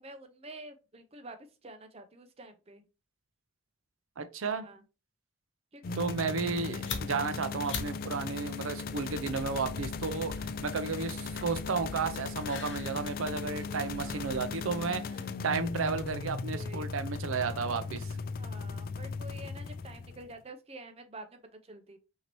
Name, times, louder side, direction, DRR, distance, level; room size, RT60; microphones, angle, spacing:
voice 1, 0.0-2.9 4.5-4.8 5.7-6.0 16.5-16.9 18.4-22.0, right 2 dB, 30° right, 0.6 m, -48 dB
voice 2, 4.2-4.6 6.0-15.2 15.4-18.2, right 4 dB, 90° right, 0.6 m, -33 dB
sound 1, 5.8-20.3, left 4 dB, 45° left, 0.3 m, -37 dB
sound 2, 6.5-15.6, left 5 dB, 60° left, 0.9 m, -46 dB
6.0 x 2.8 x 3.0 m
head